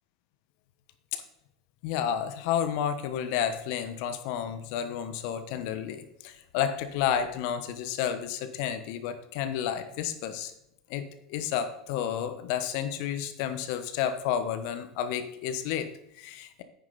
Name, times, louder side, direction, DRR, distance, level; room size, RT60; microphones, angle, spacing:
voice 1, 1.8-10.5 10.9-16.6, left 9 dB, 55° left, 9 dB, 1.2 m, -31 dB
9.5 x 9.5 x 4.1 m, 0.83 s
hypercardioid pair, 90°, 3 cm